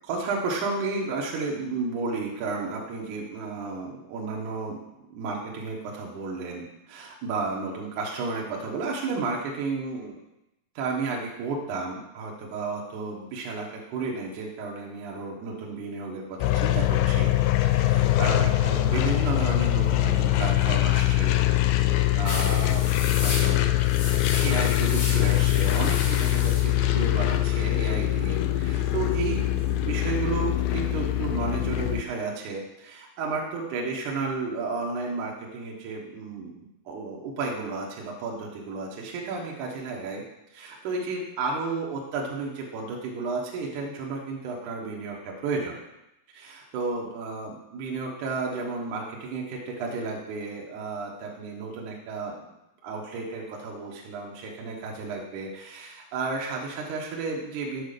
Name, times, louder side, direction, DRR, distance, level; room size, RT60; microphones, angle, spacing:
voice 1, 0.0-4.8 5.1-10.2 10.8-17.3 17.6-21.5 21.8-24.1 24.4-29.5 29.8-40.2 40.5-45.8 46.3-52.3 52.8-57.8, right 4 dB, 70° right, -2 dB, 2.0 m, -32 dB
sound 1, 16.4-32.0, left 15 dB, 85° left, 2.2 m, -23 dB
sound 2, 22.3-29.8, left 3 dB, 60° left, 1.6 m, -36 dB
8.1 x 4.7 x 6.7 m, 0.88 s
omnidirectional pair, 4.8 m